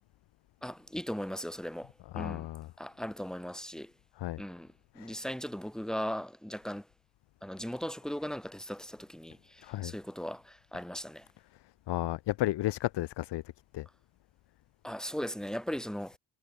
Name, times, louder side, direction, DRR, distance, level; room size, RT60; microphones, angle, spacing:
voice 1, 0.6-2.5 2.8-3.9 4.4-6.9 7.4-11.3 14.8-16.2, equal, ahead, 4.0 m, -38 dB
voice 2, 2.1-2.7 4.2-4.4 5.0-5.1 9.6-9.9 11.9-13.4 13.7-13.9, left 16 dB, 80° left, 1.1 m, -33 dB
cardioid pair, 125°, 41 cm